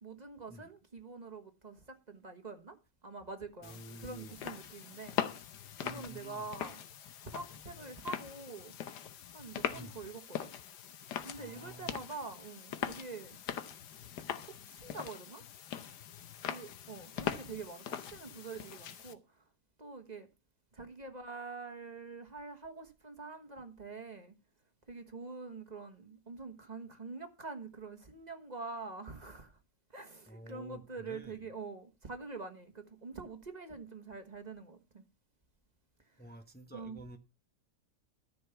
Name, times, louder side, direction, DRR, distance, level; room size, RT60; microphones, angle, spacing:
voice 1, 0.0-2.8 3.0-5.2 5.8-6.8 7.2-8.7 9.3-10.5 11.2-13.4 14.7-15.4 16.4-19.2 19.8-20.3 20.7-24.3 24.9-29.6 29.9-35.0 36.7-37.0, right 4 dB, 25° right, 1.3 m, -45 dB
sound 1, 3.6-19.1, left 9 dB, 80° left, 1.5 m, -42 dB
voice 2, 3.6-4.4 5.8-6.5 9.7-10.0 11.3-12.0 17.2-17.5 30.3-31.5 36.2-37.2, right 1 dB, 5° left, 0.9 m, -51 dB
13.5 x 5.9 x 7.0 m
omnidirectional pair, 1.8 m